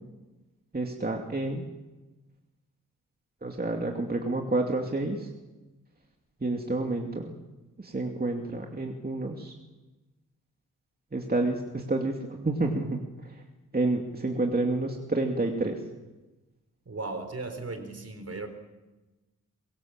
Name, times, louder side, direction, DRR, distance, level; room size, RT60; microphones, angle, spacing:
voice 1, 0.7-1.7 3.4-5.3 6.4-7.3 7.8-9.5 11.1-13.4 13.7-15.8, right 2 dB, 30° right, 1 dB, 2.6 m, -29 dB
voice 2, 16.9-18.5, right 3 dB, 50° right, 7 dB, 4.1 m, -36 dB
24.0 x 23.0 x 7.5 m, 1.1 s
wide cardioid pair, 105°, 32 cm